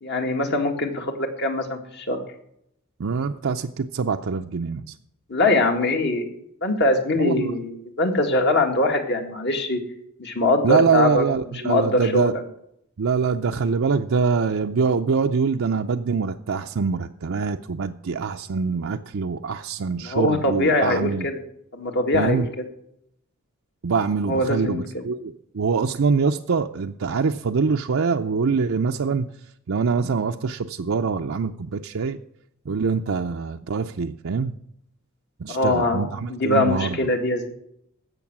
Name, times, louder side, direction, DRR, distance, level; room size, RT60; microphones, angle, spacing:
voice 1, 0.0-2.2 5.3-6.3 6.6-9.8 10.2-11.2 11.6-12.4 20.0-21.4 21.7-22.4 24.3-25.1 35.5-37.5, left 2 dB, 50° left, 4 dB, 1.9 m, -22 dB
voice 2, 3.0-4.9 7.2-7.6 10.6-12.3 13.0-21.3 22.1-22.5 23.8-29.3 29.7-32.2 32.7-34.5 35.4-37.0, right 5 dB, 65° right, 4 dB, 0.5 m, -24 dB
16.0 x 6.5 x 6.0 m, 0.75 s
head